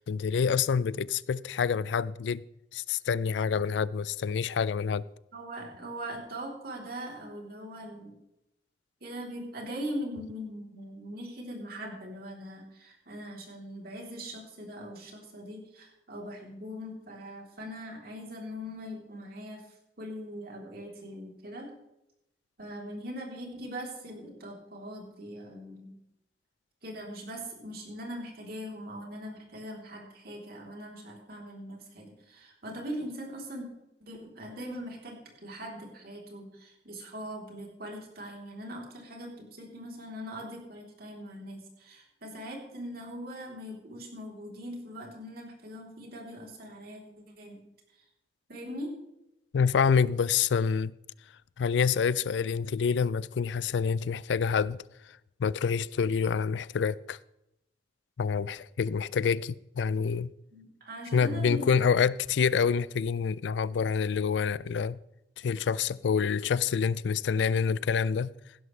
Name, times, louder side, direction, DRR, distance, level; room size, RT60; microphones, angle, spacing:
voice 1, 0.0-2.4 2.7-5.0 49.5-50.9 51.6-54.8 55.4-57.2 58.2-60.3 61.1-65.0 65.4-68.3, left 6 dB, 80° left, 0.4 m, -27 dB
voice 2, 5.3-8.2 9.0-19.6 20.0-21.7 22.6-26.0 26.8-33.7 34.0-47.0 47.4-47.6 48.5-48.9 60.5-61.7, equal, 60° right, 3.4 m, -41 dB
16.0 x 11.5 x 3.2 m
head